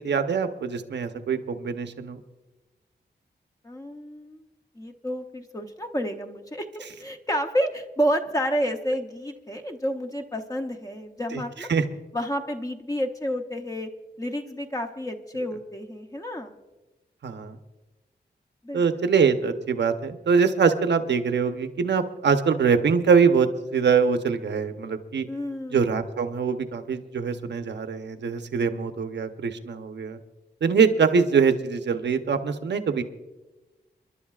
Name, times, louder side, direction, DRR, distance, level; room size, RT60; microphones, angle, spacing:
voice 1, 0.0-2.2 11.3-11.8 17.2-17.6 18.7-25.3 25.7-30.2 30.6-33.0, right 5 dB, 85° right, 8 dB, 0.9 m, -23 dB
voice 2, 3.6-4.4 4.8-11.7 12.1-13.9 14.2-16.5 18.6-18.8 25.3-25.9, equal, 20° left, 4 dB, 0.7 m, -30 dB
29.5 x 11.5 x 2.4 m, 1.1 s
wide cardioid pair, 180°, 18 cm